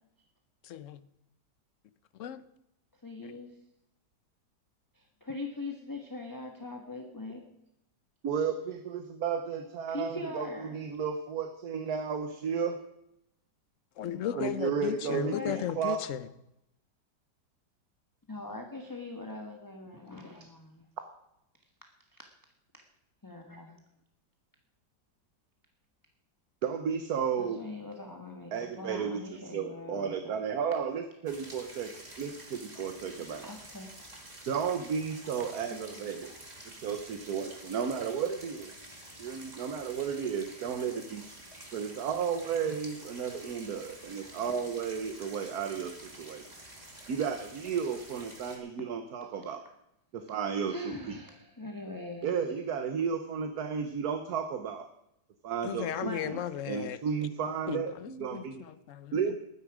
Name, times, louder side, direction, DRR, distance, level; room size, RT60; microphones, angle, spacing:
voice 1, 0.6-1.1 2.1-2.4 3.2-3.3 14.0-16.3 55.6-57.0 57.7-59.4, left 10 dB, 60° left, 0.9 m, -36 dB
voice 2, 3.0-3.5 4.9-7.5 9.9-10.9 15.1-15.7 18.3-20.8 23.2-23.8 27.4-30.4 33.4-34.1 35.7-36.0 50.7-52.4 56.0-56.3, left 2 dB, 10° left, 1.3 m, -41 dB
voice 3, 8.2-12.8 14.4-16.0 26.6-27.6 28.5-29.2 29.5-33.5 34.5-36.3 36.6-38.7 39.2-41.3 41.7-46.5 47.1-49.6 50.1-51.1 52.2-54.9 55.4-56.4 56.7-58.6 59.1-59.4, right 6 dB, 60° right, 1.4 m, -33 dB
sound 1, 31.3-48.6, right 1 dB, 20° right, 2.6 m, -49 dB
20.0 x 10.0 x 4.9 m
omnidirectional pair, 1.9 m